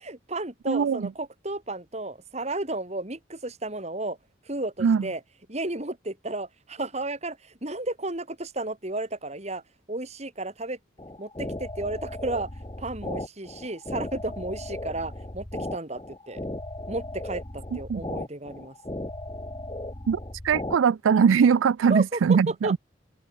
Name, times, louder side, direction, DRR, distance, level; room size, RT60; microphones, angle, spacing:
voice 1, 0.0-4.2 4.4-5.2 5.5-9.6 9.9-10.8 11.2-12.5 12.8-16.4 16.9-18.8 21.9-22.8, right 2 dB, 35° right, 2.4 m, -33 dB
voice 2, 0.7-1.0 4.8-5.1 17.9-18.0 20.1-20.2 20.4-22.8, right 6 dB, 80° right, 0.4 m, -21 dB
sound 1, 11.0-20.8, left 1 dB, 25° left, 1.4 m, -36 dB
open air
head